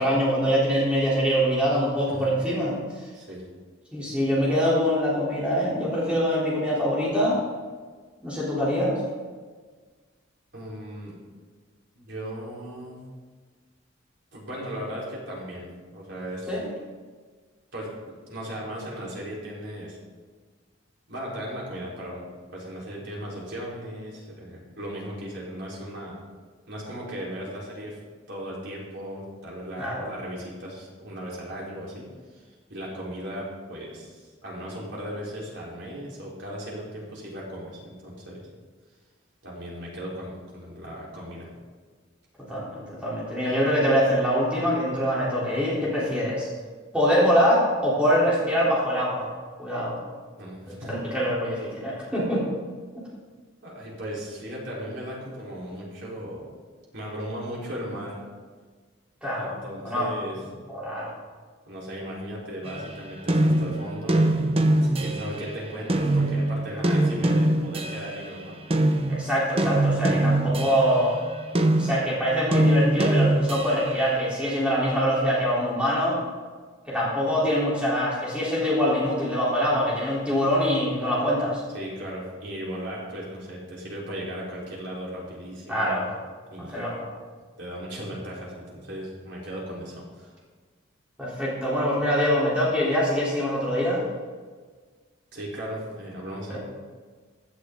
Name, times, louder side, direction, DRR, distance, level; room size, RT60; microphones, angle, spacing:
voice 1, 0.0-3.1 3.9-7.4 8.2-9.0 16.5-16.7 29.8-30.1 42.5-46.5 46.9-49.3 49.6-50.0 50.7-52.4 59.2-59.6 59.8-60.1 60.7-61.1 66.8-67.0 69.1-71.2 71.8-76.2 76.9-81.6 85.7-86.1 86.7-87.1 91.2-94.0 96.5-96.6, equal, 5° right, -8 dB, 3.8 m, -24 dB
voice 2, 10.5-11.2 11.9-13.0 14.3-15.7 15.9-16.5 17.7-20.0 21.1-26.1 26.7-28.0 28.3-32.1 32.3-38.5 39.4-41.5 50.4-51.0 53.6-56.4 56.9-58.2 59.4-60.4 61.7-68.6 70.1-70.5 81.7-86.1 86.5-86.8 87.6-90.3 95.3-96.6, equal, 65° right, -5 dB, 4.5 m, -37 dB
sound 1, 62.7-65.5 65.9-68.3 68.7-74.0, right 1 dB, 30° right, 0.8 m, -23 dB
16.0 x 12.0 x 4.0 m, 1.5 s
head